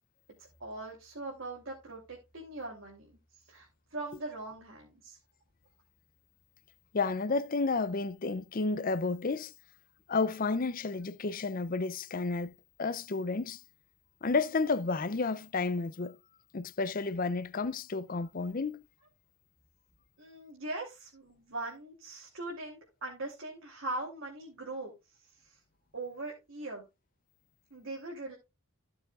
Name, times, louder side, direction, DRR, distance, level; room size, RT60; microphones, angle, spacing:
voice 1, 0.4-3.2 3.5-5.2 20.2-25.6 25.9-26.8 27.7-28.4, right 2 dB, 60° right, 3.1 m, -41 dB
voice 2, 6.9-9.5 10.1-12.5 12.8-13.6 14.2-16.2 16.5-18.8, left 3 dB, 40° left, 0.5 m, -31 dB
15.0 x 7.0 x 2.4 m
head